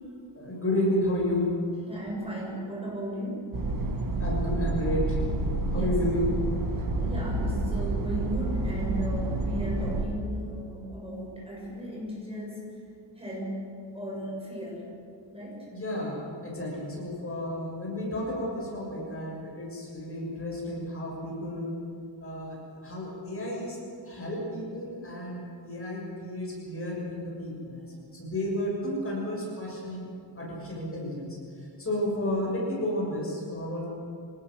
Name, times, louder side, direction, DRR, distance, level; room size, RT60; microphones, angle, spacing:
voice 1, 0.3-1.5 4.2-5.2 5.7-6.3 15.7-21.8 22.2-22.6 22.8-23.8 24.0-30.1 30.4-31.4 31.8-33.8, left 1 dB, 30° left, -3 dB, 6.6 m, -32 dB
voice 2, 1.9-3.5 5.7-6.0 6.7-12.8 13.2-14.9 15.3-15.7, equal, 15° right, -4 dB, 6.9 m, -36 dB
sound 1, 3.5-10.0, right 2 dB, 45° right, 1.8 m, -29 dB
25.5 x 19.5 x 6.4 m, 2.4 s
wide cardioid pair, 165°, 45 cm